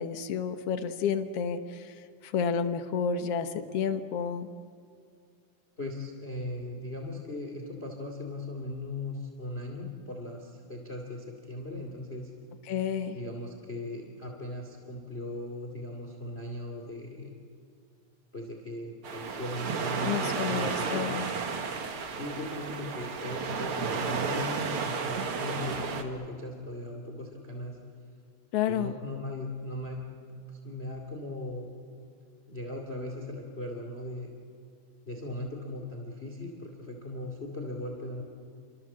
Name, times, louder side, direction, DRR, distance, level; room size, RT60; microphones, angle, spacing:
voice 1, 0.0-1.9 2.2-4.5 12.7-13.2 20.0-21.3 28.5-29.0, left 7 dB, 65° left, 8 dB, 1.5 m, -30 dB
voice 2, 5.8-12.3 13.1-17.3 18.3-21.0 22.1-27.8 28.7-30.0 30.3-31.7 32.5-34.3 35.0-38.2, left 1 dB, 20° left, 3 dB, 2.4 m, -38 dB
sound 1, 19.0-26.0, right 5 dB, 50° right, 2.0 m, -32 dB
29.0 x 25.0 x 7.5 m, 2.2 s
omnidirectional pair, 4.1 m